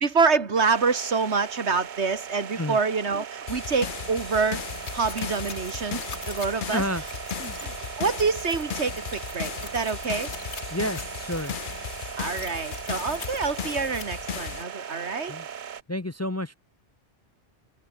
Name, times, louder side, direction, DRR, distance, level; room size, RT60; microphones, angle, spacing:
voice 1, 0.0-4.6 4.9-6.8 7.6-10.3 12.2-15.3, right 4 dB, 85° right, 2.2 m, -26 dB
sound 1, 0.5-15.8, right 8 dB, 50° right, 0.8 m, -39 dB
sound 2, 3.5-14.6, left 9 dB, 55° left, 0.8 m, -36 dB
sound 3, 4.5-14.0, left 5 dB, 90° left, 2.1 m, -44 dB
voice 2, 6.6-7.0 7.3-7.5 10.7-11.6 15.3-15.5 15.9-16.5, left 1 dB, 20° left, 0.6 m, -30 dB
omnidirectional pair, 1.1 m